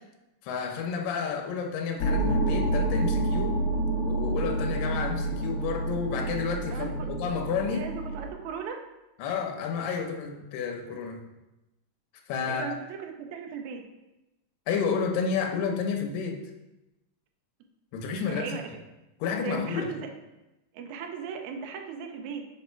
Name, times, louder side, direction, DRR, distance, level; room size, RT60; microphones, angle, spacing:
voice 1, 0.4-3.6 4.0-7.9 9.2-11.2 12.3-12.6 14.7-16.4 17.9-18.5 19.2-19.9, left 6 dB, 80° left, 3 dB, 2.4 m, -30 dB
sound 1, 2.0-8.3, right 2 dB, 65° left, 1.7 m, -28 dB
voice 2, 6.7-7.1 7.7-8.8 12.5-13.9 18.2-18.7 19.4-20.1 20.7-22.4, right 6 dB, 75° right, 3 dB, 1.8 m, -37 dB
6.1 x 4.1 x 4.4 m, 0.96 s
omnidirectional pair, 3.9 m